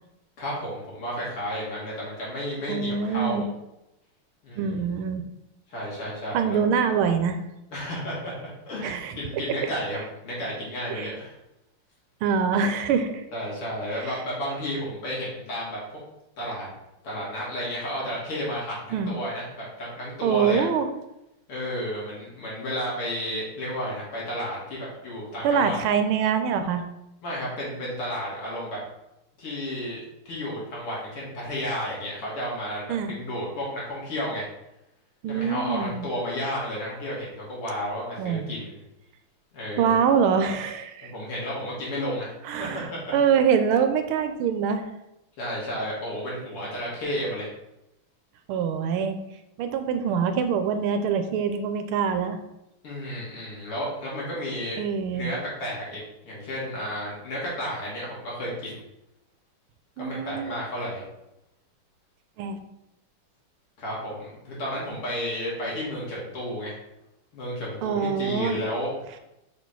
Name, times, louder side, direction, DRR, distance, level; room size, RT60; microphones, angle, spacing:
voice 1, 0.4-3.5 4.4-4.8 5.7-6.6 7.7-11.3 13.3-15.8 16.4-16.7 17.0-20.7 21.5-25.8 27.2-28.8 29.4-34.4 35.3-38.7 39.5-40.0 41.0-43.1 45.4-47.5 52.8-54.8 55.1-58.8 60.0-61.0 63.8-66.7 67.3-68.9, equal, 75° left, -5 dB, 3.3 m, -32 dB
voice 2, 2.7-3.4 4.6-5.3 6.3-7.4 8.8-9.1 10.9-11.1 12.2-13.2 13.9-14.1 18.9-19.2 20.2-20.9 25.4-26.8 32.9-33.1 35.2-36.1 38.2-38.5 39.8-41.1 42.5-44.9 48.5-49.2 49.6-52.4 54.8-55.3 60.0-60.6 62.4-62.6 67.8-68.6, right 6 dB, 80° right, 8 dB, 1.5 m, -24 dB
5.9 x 4.2 x 4.6 m, 0.89 s
omnidirectional pair, 2.4 m